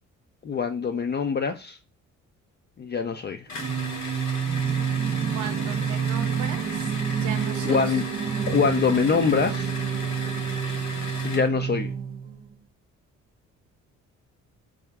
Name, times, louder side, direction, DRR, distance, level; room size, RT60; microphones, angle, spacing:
voice 1, 0.4-1.8 2.8-3.4 7.6-8.1 8.5-9.7 11.2-12.0, left 5 dB, 35° left, 0.4 m, -24 dB
sound 1, 3.5-11.5, left 3 dB, 65° left, 1.0 m, -37 dB
Singing, 3.6-12.5, right 7 dB, 30° right, 0.5 m, -28 dB
voice 2, 5.3-6.9 7.2-7.8, right 9 dB, 75° right, 0.7 m, -38 dB
4.7 x 2.1 x 3.4 m
cardioid pair, 90°, 30 cm